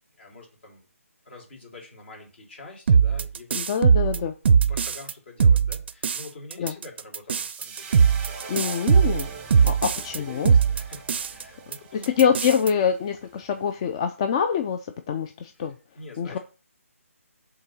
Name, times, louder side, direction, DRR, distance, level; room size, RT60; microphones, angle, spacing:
voice 1, 0.2-0.9 1.2-3.8 4.1-4.2 4.7-8.7 9.4-12.3 15.5-15.7 15.9-16.4, left 3 dB, 50° left, 0 dB, 3.1 m, -46 dB
sound 1, 2.9-5.1 5.4-6.2 6.5-10.2 10.4-11.4 11.7-11.8 12.0-12.7, right 6 dB, 45° right, 0.5 m, -20 dB
voice 2, 3.5-4.3 6.6-6.7 8.5-9.3 9.6-10.5 12.0-14.8 15.1-15.7 16.2-16.4, left 7 dB, 25° left, 7 dB, 0.4 m, -25 dB
sound 2, 7.4-13.8, right 5 dB, 15° right, 0.8 m, -42 dB
5.3 x 3.8 x 5.3 m, 0.34 s
figure-of-eight pair, 150°, 8 cm